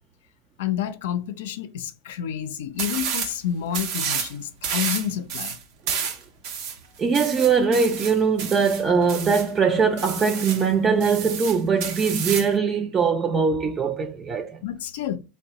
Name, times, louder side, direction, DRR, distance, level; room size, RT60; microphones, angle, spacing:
voice 1, 0.6-5.6 14.6-15.2, left 10 dB, 85° left, 0.5 m, -29 dB
sound 1, 2.8-3.4 3.7-4.3 4.6-9.5 10.0-10.7 11.0-12.5, right 7 dB, 60° right, 0.7 m, -30 dB
voice 2, 7.0-14.6, right 5 dB, 25° right, 0.4 m, -21 dB
3.7 x 2.1 x 4.0 m
supercardioid pair, 140°, 0 cm